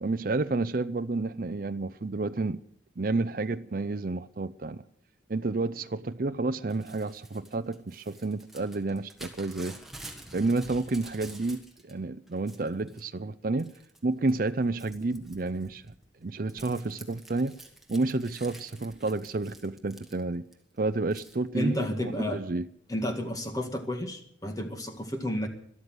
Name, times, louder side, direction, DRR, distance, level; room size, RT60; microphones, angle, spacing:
voice 1, 0.0-2.6 3.0-4.8 5.3-9.8 10.3-13.7 14.0-15.8 16.2-17.5 17.9-20.5 20.8-22.7, right 3 dB, 50° right, 0.5 m, -30 dB
Crumpling crinkling / Tearing, 6.7-11.9 12.3-13.1 13.6-14.0 14.3-20.5 21.1-21.4, right 1 dB, ahead, 1.6 m, -49 dB
voice 2, 21.5-22.4 22.9-25.5, left 1 dB, 20° left, 1.9 m, -31 dB
13.5 x 12.5 x 7.9 m
head